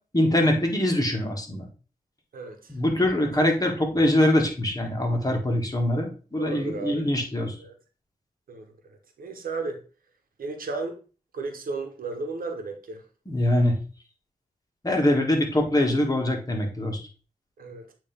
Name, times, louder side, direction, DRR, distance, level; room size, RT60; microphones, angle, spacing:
voice 1, 0.1-1.7 2.7-7.6 13.3-13.7 14.8-17.0, left 1 dB, 25° left, 1 dB, 2.0 m, -23 dB
voice 2, 2.3-2.7 6.4-7.1 7.6-7.7 8.5-8.6 9.2-9.8 10.4-11.0 11.3-13.0 17.6-17.9, right 3 dB, 85° right, 5 dB, 1.1 m, -34 dB
8.3 x 3.1 x 3.6 m, 0.36 s
cardioid pair, 45°, 14 cm